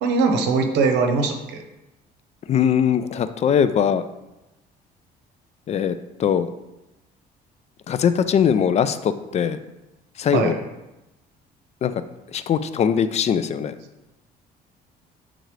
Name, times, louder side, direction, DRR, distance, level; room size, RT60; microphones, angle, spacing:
voice 1, 0.0-1.6 10.3-10.6, right 4 dB, 85° right, 5 dB, 0.9 m, -21 dB
voice 2, 2.5-4.0 5.7-5.9 6.2-6.5 7.9-9.6 10.2-10.6 11.8-11.9 12.3-13.7, left 8 dB, 40° left, 12 dB, 0.4 m, -21 dB
7.9 x 3.8 x 3.2 m, 0.99 s
cardioid pair, 110°, 17 cm